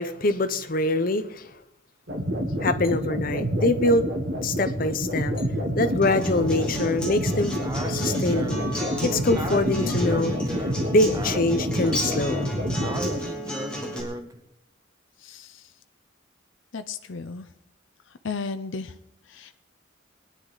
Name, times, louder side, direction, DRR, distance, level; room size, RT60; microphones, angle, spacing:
voice 1, 0.0-1.5 2.6-4.0 4.4-5.3 5.7-7.5 7.9-10.3 10.8-12.5, left 2 dB, 45° left, 0.8 m, -24 dB
sound 1, 2.1-13.2, equal, 60° right, 2.5 m, -28 dB
Acoustic guitar, 6.0-14.0, left 1 dB, 5° left, 3.0 m, -33 dB
Speech, 7.6-14.4, right 1 dB, 20° right, 0.8 m, -36 dB
voice 2, 15.2-15.6 16.7-17.5 18.2-18.9 19.3-19.5, left 4 dB, 80° left, 0.7 m, -34 dB
23.5 x 10.0 x 4.0 m
head